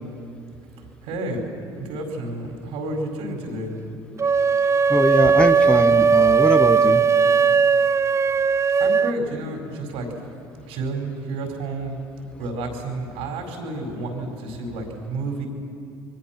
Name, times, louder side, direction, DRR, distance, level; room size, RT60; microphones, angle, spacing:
voice 1, 0.8-1.4 1.8-3.7 8.8-10.1 10.7-12.0 12.4-15.5, right 2 dB, 70° right, 3 dB, 4.9 m, -30 dB
sound 1, 4.2-9.2, right 6 dB, 25° right, 0.5 m, -18 dB
voice 2, 4.9-7.0, left 1 dB, 10° left, 6 dB, 1.5 m, -21 dB
29.5 x 22.5 x 6.0 m, 2.6 s
hypercardioid pair, 70°, 11 cm